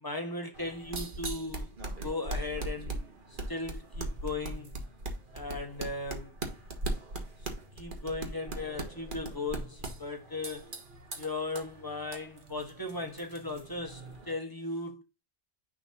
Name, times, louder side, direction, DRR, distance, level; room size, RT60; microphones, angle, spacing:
voice 1, 0.0-1.7 2.0-4.7 5.3-6.3 7.8-10.8 11.2-15.0, left 2 dB, 20° left, 1.4 m, -37 dB
sound 1, 0.5-14.3, right 2 dB, 45° right, 1.6 m, -40 dB
10.0 x 3.9 x 2.7 m
omnidirectional pair, 1.2 m